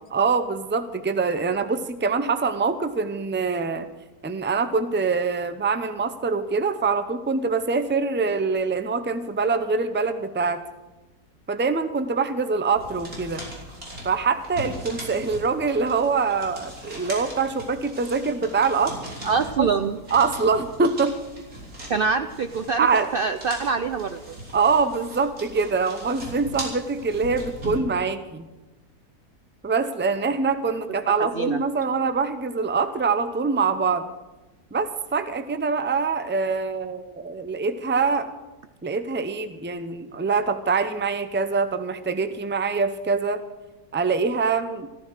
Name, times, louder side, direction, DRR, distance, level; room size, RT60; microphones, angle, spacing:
voice 1, 0.1-3.9 4.2-10.6 11.5-13.4 14.0-19.0 19.6-19.7 20.1-21.2 22.8-23.1 24.5-28.5 29.6-34.0 34.7-38.3 38.8-43.4 43.9-44.9, right 4 dB, 15° right, 10 dB, 0.4 m, -24 dB
sound 1, 12.8-27.8, right 1 dB, 60° right, 4.3 m, -39 dB
voice 2, 19.2-20.0 21.9-24.2 31.2-31.6, right 5 dB, 80° right, 9 dB, 0.5 m, -25 dB
14.5 x 13.5 x 6.5 m, 1.1 s
omnidirectional pair, 1.7 m